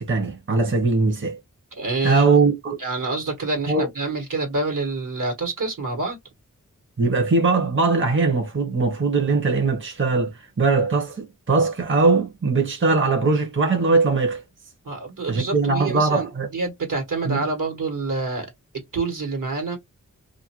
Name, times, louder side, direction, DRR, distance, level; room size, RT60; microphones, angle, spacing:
voice 1, 0.0-1.4 2.0-2.8 3.7-3.9 7.0-14.4 15.3-16.5 17.2-17.4, right 3 dB, 40° right, 0.8 m, -20 dB
voice 2, 1.8-2.3 2.8-6.2 14.8-18.5 18.9-19.8, right 3 dB, 75° right, 1.3 m, -27 dB
2.5 x 2.1 x 2.9 m
cardioid pair, 50°, 32 cm